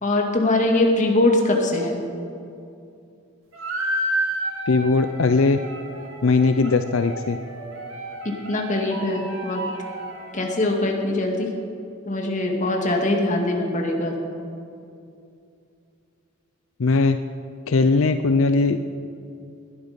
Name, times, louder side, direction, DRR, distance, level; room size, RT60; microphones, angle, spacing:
voice 1, 0.0-2.0 8.2-9.6 10.3-11.5 12.0-14.2, left 2 dB, 40° left, 1 dB, 2.2 m, -22 dB
sound 1, 3.5-10.6, right 1 dB, 80° right, 2.4 m, -31 dB
voice 2, 4.7-5.6 6.2-7.4 16.8-17.2 17.7-18.8, left 3 dB, 85° left, 9 dB, 0.6 m, -19 dB
20.0 x 12.0 x 5.2 m, 2.5 s
head